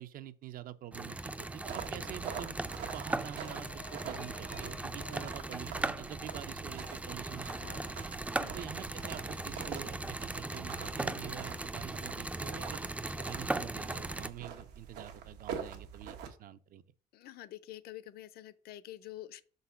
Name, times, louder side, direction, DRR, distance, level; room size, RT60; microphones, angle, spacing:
voice 1, 0.0-2.6 2.9-8.2 8.5-12.9 13.3-16.8, right 11 dB, 55° right, 0.5 m, -47 dB
sound 1, 0.9-14.3, right 2 dB, 10° right, 0.3 m, -38 dB
sound 2, 1.7-16.3, right 7 dB, 90° right, 1.2 m, -45 dB
creaking attic door, 3.2-7.3 7.6-8.4, left 6 dB, 85° left, 1.4 m, -56 dB
voice 2, 17.1-19.4, left 14 dB, 65° left, 0.6 m, -47 dB
5.6 x 4.0 x 5.6 m
cardioid pair, 110°, 17 cm